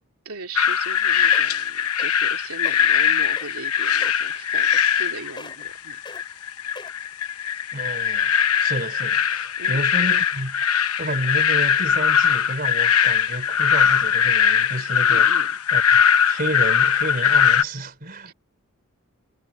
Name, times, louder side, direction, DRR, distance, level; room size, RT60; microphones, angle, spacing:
voice 1, 0.2-6.0 9.6-9.8 15.1-15.6 18.2-18.3, right 3 dB, 80° right, 2.8 m, -38 dB
sound 1, 0.6-17.6, left 8 dB, 85° left, 0.9 m, -20 dB
sound 2, 1.0-1.1 1.3-1.6 2.0-2.3 2.6-2.8 3.4-3.7 4.0-4.3 4.7-5.1 5.4-5.7 6.1-6.2 6.8-7.1 7.7-7.8, left 3 dB, 20° left, 7.1 m, -40 dB
voice 2, 7.7-8.3 8.6-10.6 11.0-15.3 15.7-18.3, right 1 dB, 40° right, 3.7 m, -30 dB
head